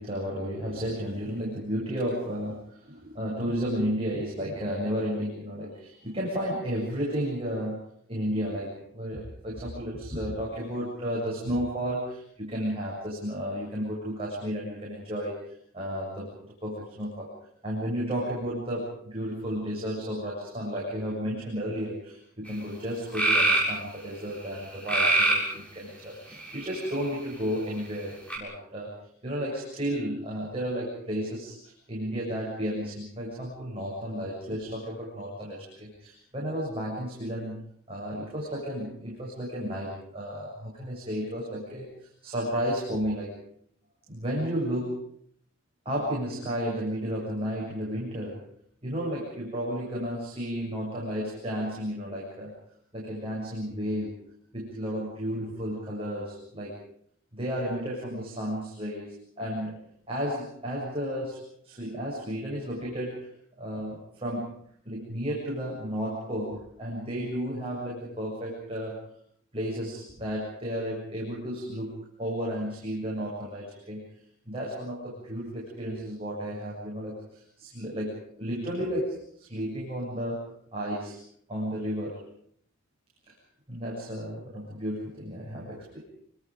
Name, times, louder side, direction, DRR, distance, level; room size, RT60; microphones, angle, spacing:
voice 1, 0.0-7.8 8.1-17.3 17.6-28.9 29.2-37.6 37.9-43.3 44.1-45.1 45.8-48.5 48.8-52.5 52.9-54.1 54.5-56.7 57.3-59.1 59.4-59.8 60.1-63.3 63.6-64.5 64.8-69.0 69.5-74.0 74.5-81.2 81.5-82.2 83.3-83.4 83.7-86.0, equal, 25° right, -4 dB, 7.4 m, -33 dB
sound 1, 22.5-22.6 23.1-23.7 24.9-25.5 26.3-27.0 28.3-28.4, right 2 dB, 5° left, 6.9 m, -23 dB
28.0 x 25.5 x 5.2 m, 0.64 s
head